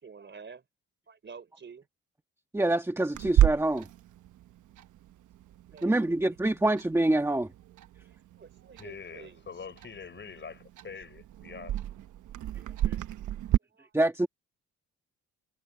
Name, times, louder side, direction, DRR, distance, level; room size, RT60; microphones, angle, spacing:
voice 1, 0.0-0.6 1.1-1.9 5.7-6.4 6.6-6.7 8.0-9.5 12.5-12.9 13.7-13.9, right 5 dB, 40° right, 4.0 m, -50 dB
voice 2, 2.5-3.9 5.8-7.5 12.9-13.0 13.9-14.3, right 1 dB, 10° right, 1.6 m, -26 dB
Clock, 3.1-13.6, right 12 dB, 75° right, 1.2 m, -32 dB
voice 3, 8.8-12.1, left 6 dB, 40° left, 6.0 m, -45 dB
cardioid pair, 90°, 30 cm